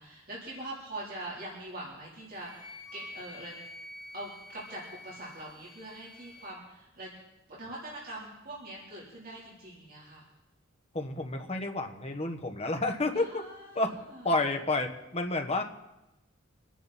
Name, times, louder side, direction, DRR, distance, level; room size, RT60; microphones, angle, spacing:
voice 1, 0.0-3.6 4.1-7.1 7.5-10.3 13.1-14.3, right 1 dB, 45° right, -6 dB, 3.9 m, -43 dB
Wind instrument woodwind instrument, 2.4-6.5, left 2 dB, 5° right, 5.5 m, -48 dB
voice 2, 10.9-13.4 13.7-15.6, left 2 dB, 30° left, 4 dB, 1.4 m, -30 dB
26.0 x 10.5 x 4.4 m, 0.94 s
head